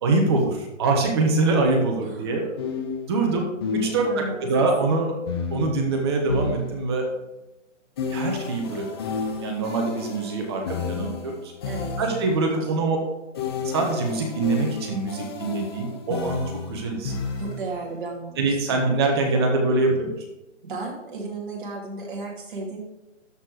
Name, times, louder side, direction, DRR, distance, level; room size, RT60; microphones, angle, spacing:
voice 1, 0.0-2.4 3.1-3.5 3.7-5.2 5.5-7.1 8.1-8.8 9.4-11.5 12.0-13.0 13.6-16.4 16.7-17.1 18.4-20.1, right 3 dB, 20° right, 2 dB, 1.2 m, -24 dB
voice 2, 2.0-2.5 4.0-4.5 4.8-5.0 11.7-11.9 17.4-19.0 19.2-19.6 20.6-22.8, right 3 dB, 40° right, -1 dB, 2.6 m, -35 dB
sound 1, 2.6-4.4 5.3-7.2 8.0-12.5 13.3-17.9, left 4 dB, 20° left, 0.9 m, -32 dB
12.5 x 4.4 x 4.9 m, 0.99 s
hypercardioid pair, 160°, 37 cm